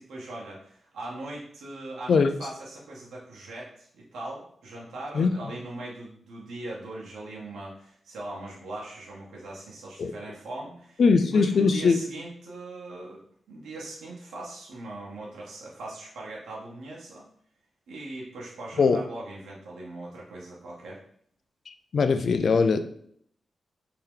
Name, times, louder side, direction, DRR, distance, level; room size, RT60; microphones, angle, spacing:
voice 1, 0.0-11.0 11.3-17.2 17.9-21.0, right 2 dB, 90° right, -4 dB, 1.0 m, -40 dB
voice 2, 11.0-12.0 18.8-19.0 21.7-22.8, left 5 dB, 70° left, 9 dB, 0.4 m, -21 dB
3.5 x 2.8 x 3.5 m, 0.64 s
cardioid pair, 55°, 0 cm